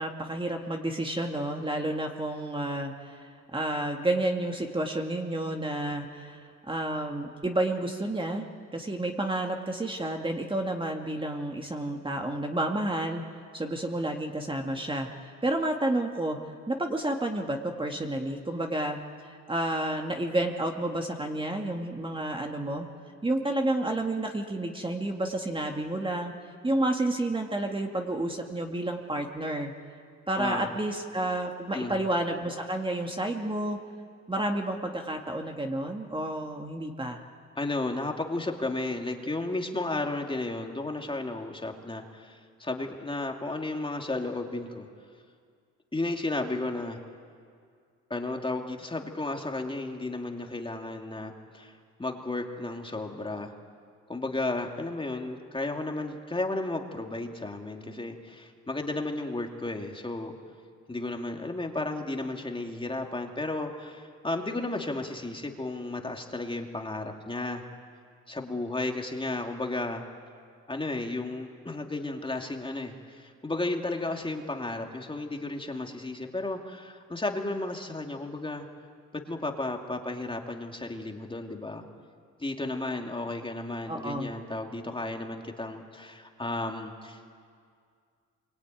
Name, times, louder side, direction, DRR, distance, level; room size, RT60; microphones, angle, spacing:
voice 1, 0.0-8.5 8.7-13.2 13.5-16.4 16.7-19.0 19.2-22.9 23.2-26.3 26.6-29.7 30.3-33.8 34.3-37.2 83.9-84.3, right 1 dB, 15° right, 2 dB, 2.2 m, -30 dB
voice 2, 30.4-30.7 31.7-32.0 37.6-44.9 45.9-47.0 48.1-53.5 54.1-60.3 60.9-67.6 68.3-70.0 70.7-78.6 79.1-81.8 82.4-87.3, left 2 dB, 15° left, 2 dB, 2.7 m, -33 dB
27.0 x 24.0 x 9.3 m, 2.2 s
cardioid pair, 90°, 30 cm